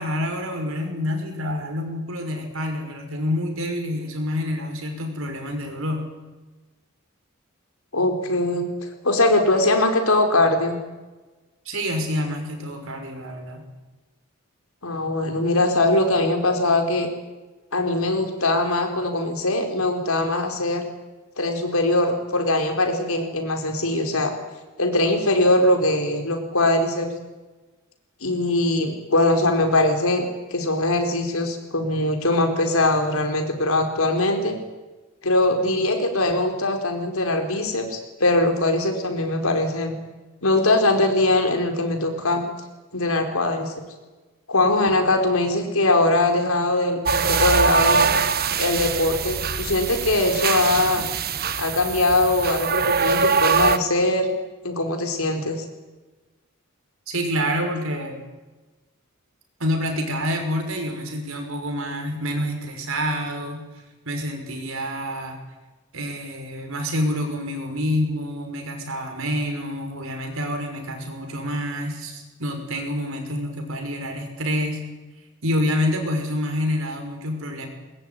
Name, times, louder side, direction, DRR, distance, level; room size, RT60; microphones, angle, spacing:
voice 1, 0.0-6.1 11.7-13.6 57.1-58.2 59.6-63.7 64.1-65.4 65.9-74.8 75.4-77.7, left 1 dB, 70° right, 4 dB, 5.8 m, -27 dB
voice 2, 7.9-8.6 9.0-10.8 14.8-17.1 17.7-20.8 21.4-24.3 24.8-27.1 28.2-34.5 35.2-40.0 40.4-42.4 42.9-43.7 44.5-48.0 48.6-51.1 51.6-54.3 54.6-55.6, left 2 dB, 80° left, 4 dB, 4.7 m, -21 dB
sound 1, 47.1-53.8, right 5 dB, 45° right, 1.3 m, -22 dB
22.5 x 21.5 x 9.6 m, 1.2 s
head